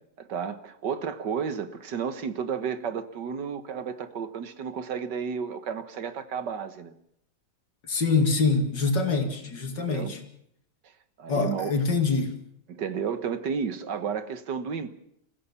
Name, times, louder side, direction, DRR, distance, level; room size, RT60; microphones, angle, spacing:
voice 1, 0.2-6.9 9.7-10.1 11.2-11.7 12.7-14.9, right 6 dB, 80° right, 2.0 m, -32 dB
voice 2, 7.8-10.2 11.3-12.4, left 4 dB, 85° left, 3.1 m, -25 dB
28.0 x 15.5 x 7.2 m
omnidirectional pair, 1.9 m